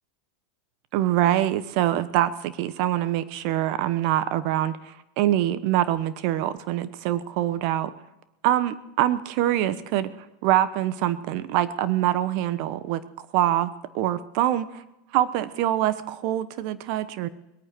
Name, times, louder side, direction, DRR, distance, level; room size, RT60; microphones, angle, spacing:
voice 1, 0.9-7.9 8.4-10.1 10.4-13.0 13.3-14.7 15.1-17.3, right 12 dB, 60° right, 14 dB, 1.0 m, -24 dB
21.0 x 9.2 x 6.2 m, 0.93 s
hypercardioid pair, 110°, 0 cm